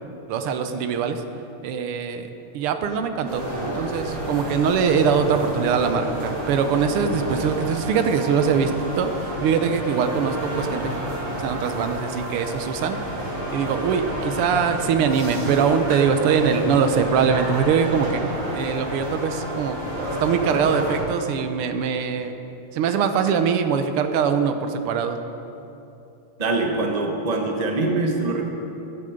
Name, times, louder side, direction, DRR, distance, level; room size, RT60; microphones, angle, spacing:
voice 1, 0.3-1.2 1.6-11.0 11.4-18.2 18.5-19.8 20.2-22.3 22.7-25.2, right 6 dB, 85° right, 8 dB, 1.7 m, -22 dB
sound 1, 3.2-21.0, right 1 dB, 55° right, 4.3 m, -30 dB
voice 2, 26.4-28.5, right 3 dB, 25° right, 2 dB, 1.1 m, -23 dB
14.5 x 11.0 x 5.1 m, 2.8 s
omnidirectional pair, 2.4 m